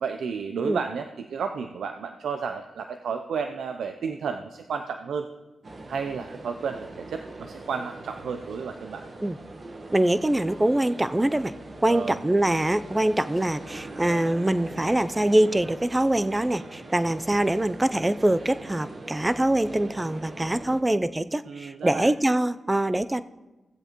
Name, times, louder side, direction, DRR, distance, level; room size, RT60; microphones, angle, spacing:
voice 1, 0.0-5.3 5.9-9.0 11.9-12.2 21.4-22.1, right 6 dB, 75° right, 7 dB, 0.5 m, -32 dB
sound 1, 5.6-20.8, right 2 dB, 50° right, 1.1 m, -42 dB
voice 2, 9.9-11.5 11.8-23.2, right 1 dB, 20° right, 13 dB, 0.5 m, -24 dB
16.5 x 7.8 x 3.0 m, 1.1 s
supercardioid pair, 40°, 0 cm